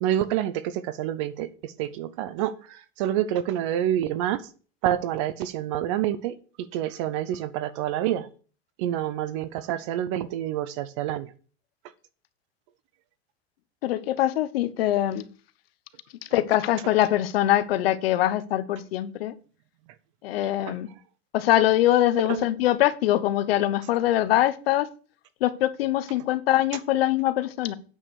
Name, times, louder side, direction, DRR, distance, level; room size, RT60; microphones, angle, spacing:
voice 1, 0.0-4.4 4.8-8.3 8.8-11.3 22.3-22.4, right 11 dB, 30° right, 0.5 m, -28 dB
voice 2, 13.8-15.3 16.3-19.3 20.2-20.9 21.3-24.9 25.4-27.7, left 13 dB, 65° left, 0.9 m, -23 dB
8.9 x 5.2 x 6.1 m
supercardioid pair, 175°, 31 cm